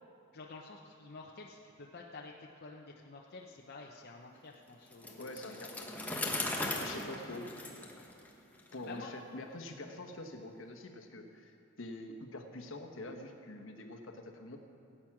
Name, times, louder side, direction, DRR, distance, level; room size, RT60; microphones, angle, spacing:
voice 1, 0.3-6.3 6.5-8.0 8.8-9.1, left 3 dB, 55° left, -1 dB, 0.8 m, -51 dB
Bicycle, 4.9-8.7, left 2 dB, 10° left, 1.2 m, -38 dB
voice 2, 5.2-6.2 6.8-7.5 8.7-14.6, left 2 dB, 70° left, 5 dB, 1.2 m, -45 dB
17.0 x 8.8 x 6.0 m, 2.7 s
head